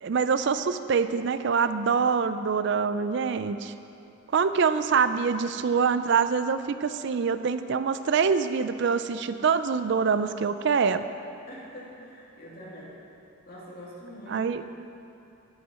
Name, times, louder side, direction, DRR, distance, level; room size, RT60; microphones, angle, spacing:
voice 1, 0.0-3.7 4.3-11.0 14.3-14.6, right 5 dB, 55° right, 11 dB, 0.4 m, -25 dB
voice 2, 11.4-13.0 13.5-14.6, equal, 45° left, -5 dB, 2.7 m, -44 dB
11.0 x 9.8 x 6.4 m, 2.8 s
head